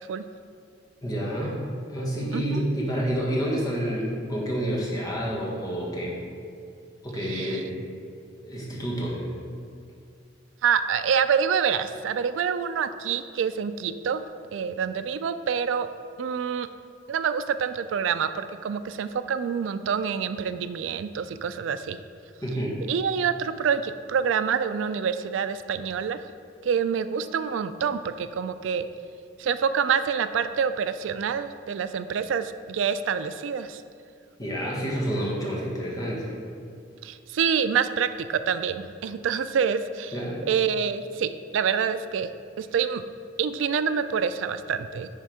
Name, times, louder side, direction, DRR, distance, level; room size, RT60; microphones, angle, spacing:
voice 1, 1.0-1.6 1.9-6.2 7.0-7.7 8.4-9.3 22.4-22.8 34.4-36.3 40.1-40.4, equal, 20° left, -4 dB, 1.5 m, -29 dB
voice 2, 2.3-2.6 7.2-7.6 10.6-14.2 14.5-15.9 16.2-16.7 17.1-22.0 22.9-26.2 26.6-28.9 29.4-33.8 37.0-40.2 40.5-42.3 42.6-43.0 43.4-45.1, right 7 dB, 85° right, 11 dB, 0.3 m, -27 dB
10.0 x 3.6 x 4.8 m, 2.4 s
head